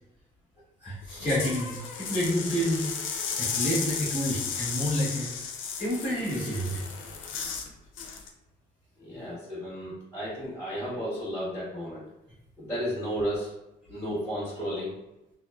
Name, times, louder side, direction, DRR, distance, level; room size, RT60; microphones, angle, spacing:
voice 1, 0.8-2.9 3.4-5.3 5.8-6.8, equal, 30° left, -11 dB, 1.4 m, -29 dB
sound 1, 1.0-7.7 8.0-8.3, left 6 dB, 80° left, 0.4 m, -34 dB
voice 2, 9.0-12.0 12.6-13.5 13.9-14.9, equal, 15° left, -11 dB, 1.2 m, -33 dB
2.9 x 2.0 x 2.3 m, 0.94 s
cardioid pair, 90°, 20 cm